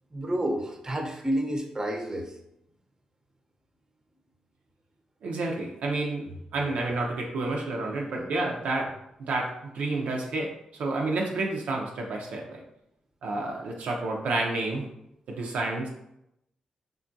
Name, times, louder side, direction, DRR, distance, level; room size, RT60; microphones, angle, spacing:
voice 1, 0.1-2.4 8.2-8.3, right 1 dB, 25° right, 3 dB, 0.7 m, -30 dB
voice 2, 5.2-8.9 9.2-12.6 13.2-14.9 15.3-15.9, right 2 dB, 75° right, 0 dB, 0.5 m, -30 dB
3.6 x 2.3 x 2.6 m, 0.82 s
supercardioid pair, 50°, 2 cm